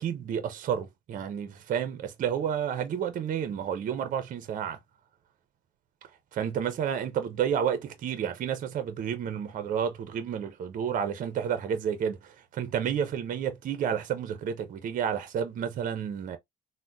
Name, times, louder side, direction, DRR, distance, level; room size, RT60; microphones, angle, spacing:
voice 1, 0.0-4.8 6.3-16.4, right 8 dB, 50° right, 0.6 m, -30 dB
3.5 x 2.1 x 2.6 m
cardioid pair, 110°, 17 cm